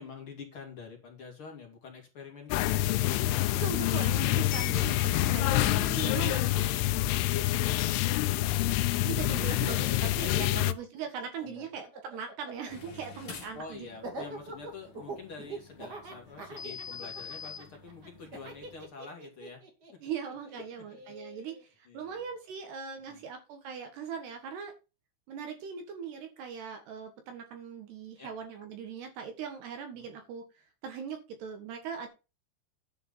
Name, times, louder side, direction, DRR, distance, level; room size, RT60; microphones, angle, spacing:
voice 1, 0.0-2.8 5.4-8.4 10.1-10.4 11.4-11.7 13.5-19.6 19.9-20.0 20.9-21.0 21.8-22.2 23.0-23.2 28.2-28.3 29.9-30.1, left 5 dB, 35° left, 1 dB, 2.8 m, -47 dB
sound 1, 2.5-10.7, left 15 dB, 85° left, 3.2 m, -27 dB
voice 2, 3.5-6.5 9.0-13.9 20.0-24.7 25.3-32.1, right 7 dB, 65° right, 6 dB, 3.2 m, -40 dB
Laughter, 6.0-8.3 8.6-21.6, right 2 dB, 40° right, 1.5 m, -45 dB
sound 2, 12.7-18.8, left 6 dB, 50° left, 1.9 m, -47 dB
10.5 x 5.6 x 5.5 m, 0.29 s
omnidirectional pair, 5.6 m